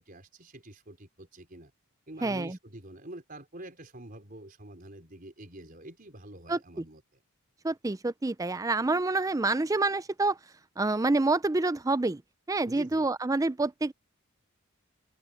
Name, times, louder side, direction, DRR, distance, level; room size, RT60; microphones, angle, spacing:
voice 1, 0.0-1.7 2.1-7.0 12.7-13.1, right 1 dB, 40° right, 4.7 m, -46 dB
voice 2, 2.2-2.6 6.5-6.6 7.6-10.4 10.8-12.2 12.5-13.9, right 2 dB, 15° right, 0.4 m, -27 dB
open air
head